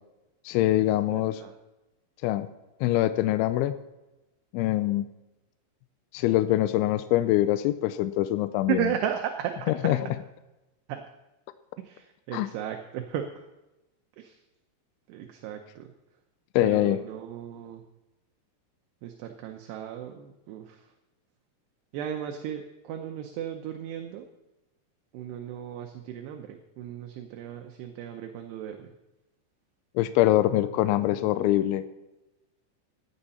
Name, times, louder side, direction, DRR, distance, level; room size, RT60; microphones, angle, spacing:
voice 1, 0.5-1.4 2.2-2.5 2.8-3.8 4.5-5.1 6.1-8.8 9.8-10.0 12.3-12.5 16.6-17.0 30.0-31.8, left 14 dB, 85° left, 11 dB, 2.9 m, -24 dB
voice 2, 1.1-1.5 8.7-9.9 10.9-11.0 11.8-13.5 14.2-14.4 15.1-15.9 16.6-17.8 19.0-20.9 21.9-24.3 25.1-28.9, right 10 dB, 75° right, 4 dB, 2.5 m, -35 dB
16.0 x 9.9 x 4.3 m, 1.0 s
omnidirectional pair, 5.6 m